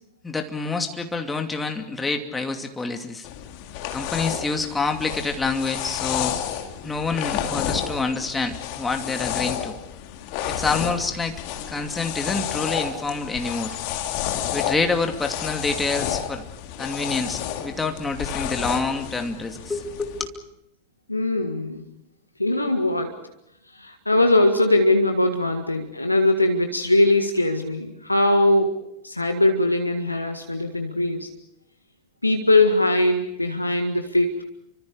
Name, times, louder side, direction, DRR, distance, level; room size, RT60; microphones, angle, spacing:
voice 1, 0.2-3.3 3.9-6.3 6.8-9.8 10.5-11.4 11.7-13.8 14.5-16.4 16.8-20.4, left 3 dB, 10° left, 4 dB, 2.6 m, -27 dB
sound 1, 3.2-20.3, left 10 dB, 45° left, 2.5 m, -31 dB
voice 2, 21.1-21.8 22.4-23.2 23.7-28.8 29.0-31.3 32.2-34.4, left 2 dB, 85° left, 5 dB, 1.7 m, -21 dB
30.0 x 25.5 x 5.0 m, 0.79 s
figure-of-eight pair, 90°, 0 cm